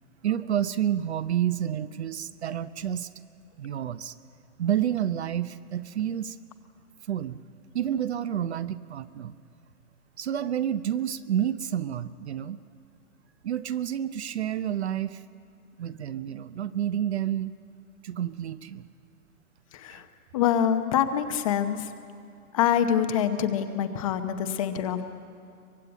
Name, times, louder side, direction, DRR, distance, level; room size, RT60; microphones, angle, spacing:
voice 1, 0.2-3.1 3.6-4.1 4.6-6.4 7.1-7.4 7.7-9.3 10.2-12.6 13.4-15.2 15.8-17.5 18.0-18.9 19.9-20.0, right 10 dB, 45° right, 14 dB, 0.7 m, -29 dB
voice 2, 19.7-20.1 20.3-21.9 22.5-25.0, left 9 dB, 25° left, 8 dB, 0.8 m, -25 dB
24.0 x 19.5 x 8.8 m, 2.6 s
hypercardioid pair, 160°, 45 cm